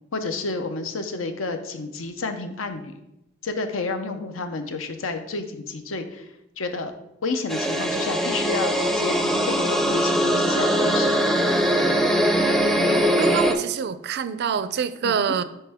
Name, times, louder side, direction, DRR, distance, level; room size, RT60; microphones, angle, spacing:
voice 1, 0.1-3.0 3.4-6.3 6.6-6.9 7.2-11.3 15.0-15.2, left 3 dB, 80° left, 7 dB, 0.7 m, -30 dB
sound 1, 7.5-13.5, equal, ahead, 0.5 m, -21 dB
voice 2, 12.9-15.4, right 7 dB, 55° right, 13 dB, 0.4 m, -26 dB
9.8 x 3.4 x 3.5 m, 0.86 s
head